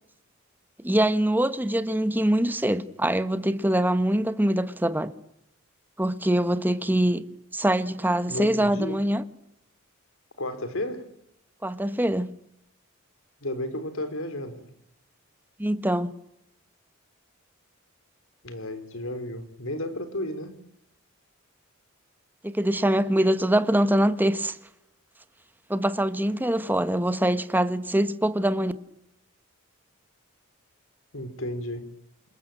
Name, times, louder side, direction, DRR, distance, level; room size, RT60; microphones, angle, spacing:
voice 1, 0.8-5.1 6.0-7.2 7.5-9.2 11.6-12.3 15.6-16.1 22.4-24.6 25.7-28.7, right 1 dB, 10° right, 1.2 m, -24 dB
voice 2, 8.3-9.0 10.4-11.0 13.4-14.7 18.4-20.6 31.1-31.9, left 1 dB, 70° left, 3.9 m, -33 dB
27.5 x 21.5 x 9.1 m
head